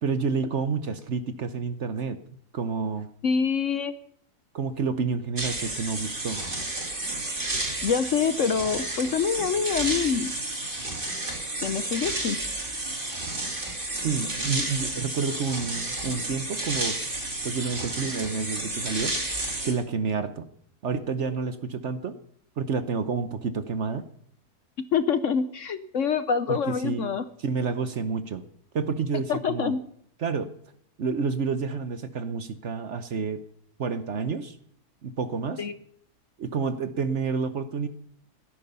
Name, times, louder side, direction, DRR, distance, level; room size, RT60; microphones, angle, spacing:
voice 1, 0.0-2.2 2.5-3.1 4.5-6.4 14.0-17.0 17.4-19.2 19.6-20.5 20.8-22.2 22.6-24.0 26.5-26.6 26.8-27.1 27.4-28.4 28.7-29.8 30.2-30.5 31.0-33.4 33.8-34.6 35.0-35.6 36.4-37.9, right 5 dB, 50° right, 11 dB, 1.1 m, -29 dB
voice 2, 3.2-3.9 7.8-10.3 11.6-12.4 24.9-27.2 29.3-29.8 35.6-35.8, left 6 dB, 60° left, 12 dB, 1.0 m, -25 dB
sound 1, 5.4-19.7, right 2 dB, 30° right, 2.8 m, -31 dB
16.5 x 13.5 x 5.5 m, 0.65 s
omnidirectional pair, 1.7 m